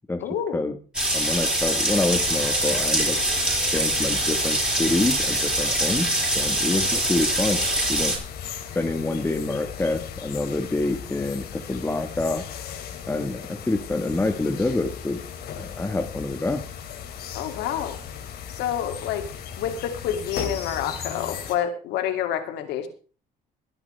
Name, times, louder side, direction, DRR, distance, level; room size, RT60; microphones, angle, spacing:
voice 1, 0.2-0.6 17.3-18.0 18.5-19.2 19.6-22.9, left 9 dB, 85° left, 7 dB, 2.7 m, -28 dB
sound 1, 0.9-8.2, right 1 dB, 5° right, 6.1 m, -24 dB
voice 2, 1.1-3.2 3.7-6.1 6.3-7.6 7.9-8.2 8.7-12.4 13.1-15.2 15.6-16.6, left 2 dB, 15° left, 6 dB, 1.5 m, -26 dB
sound 2, 1.9-21.6, left 8 dB, 70° left, 2.9 m, -37 dB
20.5 x 11.0 x 3.4 m, 0.37 s
cardioid pair, 110°, 17 cm